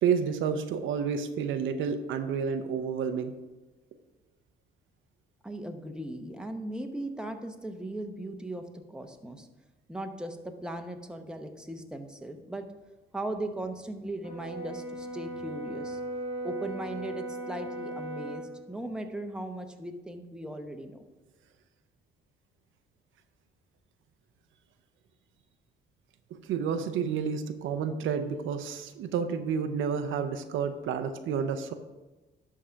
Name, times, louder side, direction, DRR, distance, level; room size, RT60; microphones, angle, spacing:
voice 1, 0.0-3.3 26.3-31.7, right 6 dB, 80° right, 8 dB, 0.7 m, -30 dB
voice 2, 5.4-9.5 9.9-12.6 13.1-16.0 16.4-21.0, right 1 dB, 5° right, 5 dB, 0.9 m, -38 dB
Brass instrument, 14.2-18.5, right 1 dB, 30° left, 2.0 m, -37 dB
11.0 x 3.8 x 5.7 m, 1.1 s
cardioid pair, 90°, 20 cm